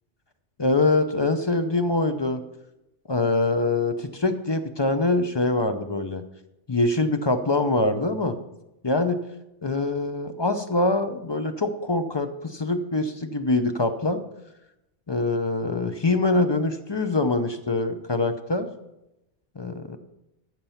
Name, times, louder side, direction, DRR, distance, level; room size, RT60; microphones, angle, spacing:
voice 1, 0.6-2.4 3.1-6.2 6.7-8.4 8.8-9.2 9.6-14.2 15.1-18.7 19.6-20.0, left 2 dB, 30° left, 8 dB, 0.5 m, -24 dB
14.5 x 6.0 x 5.7 m, 0.92 s
omnidirectional pair, 1.2 m